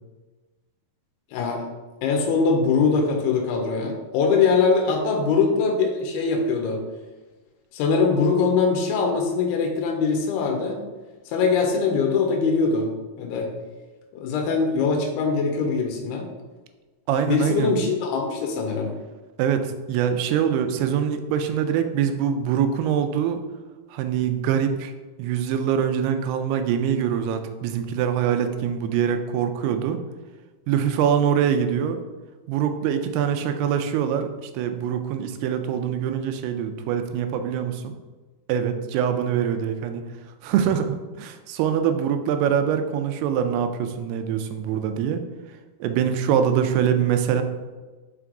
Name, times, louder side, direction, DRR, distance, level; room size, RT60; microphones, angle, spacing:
voice 1, 1.3-1.6 2.0-6.8 7.7-10.8 11.3-12.9 13.2-13.5 14.1-16.3 17.3-18.9, left 5 dB, 85° left, 2 dB, 2.8 m, -22 dB
voice 2, 17.1-17.7 19.4-23.4 23.9-24.9 25.2-30.0 30.7-32.0 32.5-37.9 38.5-40.0 40.4-45.2 45.8-47.4, right 8 dB, 85° right, 7 dB, 2.5 m, -24 dB
5.9 x 4.6 x 3.7 m, 1.2 s
omnidirectional pair, 4.6 m